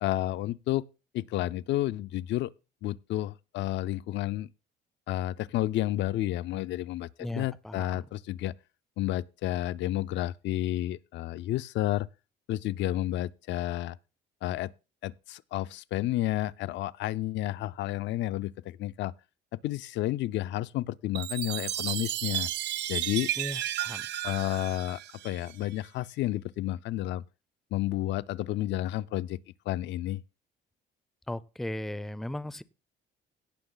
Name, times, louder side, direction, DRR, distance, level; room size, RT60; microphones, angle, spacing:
voice 1, 0.0-0.9 1.1-2.5 2.8-4.5 5.1-8.5 9.0-12.1 12.5-14.0 14.4-14.7 15.0-19.1 19.6-22.5 22.9-23.3 24.2-27.2 27.7-29.4 29.7-30.2, left 14 dB, 70° left, 0.5 m, -31 dB
voice 2, 7.2-7.9 23.4-24.0 31.3-32.6, left 1 dB, ahead, 0.4 m, -37 dB
Chime, 21.1-25.7, right 14 dB, 65° right, 0.6 m, -33 dB
17.0 x 6.1 x 3.9 m
cardioid pair, 135°, 20 cm